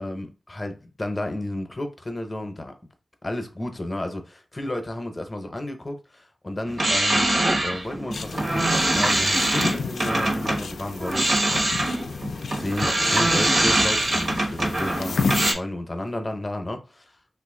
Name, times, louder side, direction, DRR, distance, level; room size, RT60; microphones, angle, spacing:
voice 1, 0.0-2.7 3.2-7.3 7.6-11.3 11.9-12.0 12.6-16.8, left 1 dB, 30° left, 0.7 m, -32 dB
sound 1, 6.7-10.6 11.0-15.5, right 1 dB, 65° right, 1.1 m, -23 dB
sound 2, 8.1-15.5, left 4 dB, 90° left, 0.3 m, -32 dB
2.8 x 2.5 x 3.7 m
wide cardioid pair, 65°, 0 cm